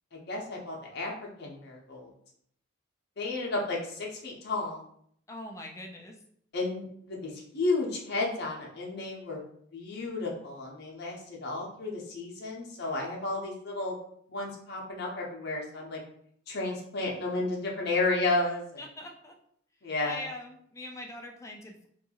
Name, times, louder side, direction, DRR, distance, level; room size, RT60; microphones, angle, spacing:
voice 1, 0.1-1.1 1.4-2.1 3.2-4.8 6.5-9.4 9.7-14.0 14.3-16.0 16.5-18.8 19.8-20.2, left 2 dB, 50° left, -2 dB, 0.6 m, -32 dB
voice 2, 5.3-6.2 18.8-19.3 20.0-21.9, left 1 dB, 15° left, 2 dB, 0.3 m, -42 dB
2.6 x 2.3 x 2.8 m, 0.66 s
head